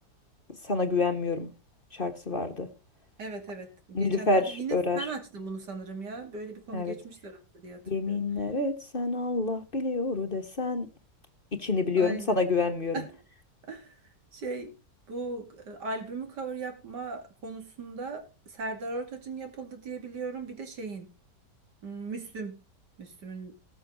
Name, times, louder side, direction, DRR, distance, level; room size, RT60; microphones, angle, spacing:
voice 1, 0.7-1.5 2.0-2.7 3.9-5.1 6.7-6.9 7.9-10.9 11.6-12.9, left 3 dB, 35° left, 7 dB, 1.2 m, -28 dB
voice 2, 3.2-7.8 8.1-8.2 12.0-12.4 12.9-13.2 13.7-14.0 14.3-14.7 15.1-18.2 18.5-21.1 21.8-22.5 23.0-23.5, right 3 dB, 85° right, 5 dB, 3.0 m, -38 dB
19.0 x 6.3 x 3.8 m, 0.31 s
omnidirectional pair, 1.8 m